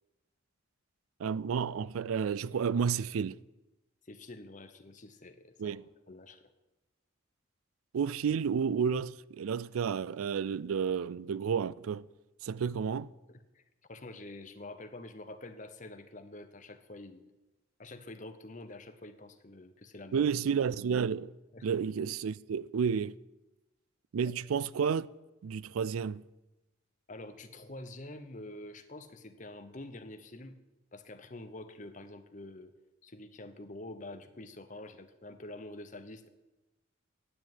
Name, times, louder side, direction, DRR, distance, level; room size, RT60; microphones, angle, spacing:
voice 1, 1.2-3.4 5.6-5.9 7.9-12.1 12.4-13.1 20.1-21.3 21.6-23.1 24.1-25.1 25.4-26.2, right 6 dB, 85° right, 0.4 m, -31 dB
voice 2, 4.0-5.8 6.1-6.4 13.3-13.6 13.9-17.3 17.8-20.3 21.5-21.7 24.2-24.3 27.1-30.6 30.9-32.7 33.0-36.3, left 2 dB, 35° left, 0.9 m, -47 dB
10.0 x 7.3 x 9.4 m
head